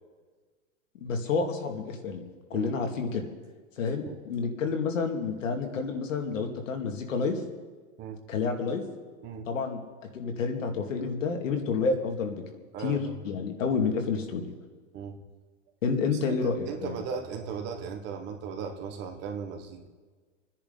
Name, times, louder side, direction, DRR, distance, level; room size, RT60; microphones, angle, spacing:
voice 1, 1.0-2.2 2.5-3.2 3.8-7.4 8.3-8.8 9.5-9.8 10.1-12.4 12.8-14.4 15.8-17.0, left 5 dB, 80° left, 3 dB, 2.4 m, -29 dB
voice 2, 12.7-13.2 14.9-15.2 16.2-19.9, right 6 dB, 25° right, 4 dB, 1.4 m, -37 dB
27.0 x 10.0 x 4.0 m, 1.4 s
supercardioid pair, 160°, 38 cm